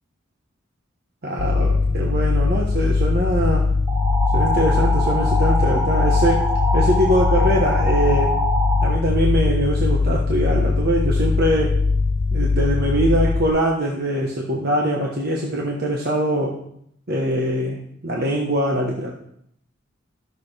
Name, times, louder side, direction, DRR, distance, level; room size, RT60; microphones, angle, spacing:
voice 1, 1.2-3.7 4.3-6.5 6.7-8.4 8.8-11.8 12.3-16.6 17.1-19.1, right 1 dB, 50° right, -2 dB, 1.1 m, -22 dB
sound 1, 1.4-13.5, left 4 dB, 65° left, 0.6 m, -20 dB
sound 2, 3.9-8.9, equal, 25° right, 2.5 m, -25 dB
12.5 x 6.7 x 3.3 m, 0.71 s
head